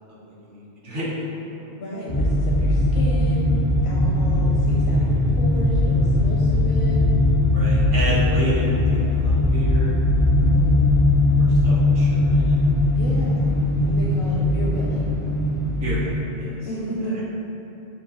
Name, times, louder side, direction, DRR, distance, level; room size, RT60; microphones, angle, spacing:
voice 1, 0.1-1.3 7.4-9.9 11.4-12.6 15.8-16.6, equal, 60° right, -7 dB, 0.9 m, -31 dB
voice 2, 1.7-3.6 3.8-7.0 10.3-11.1 12.9-13.5 13.8-15.0 16.7-17.2, equal, 85° left, -5 dB, 0.8 m, -33 dB
sound 1, 2.1-16.1, left 2 dB, 5° left, 0.3 m, -19 dB
5.5 x 2.2 x 2.9 m, 3.0 s
omnidirectional pair, 1.0 m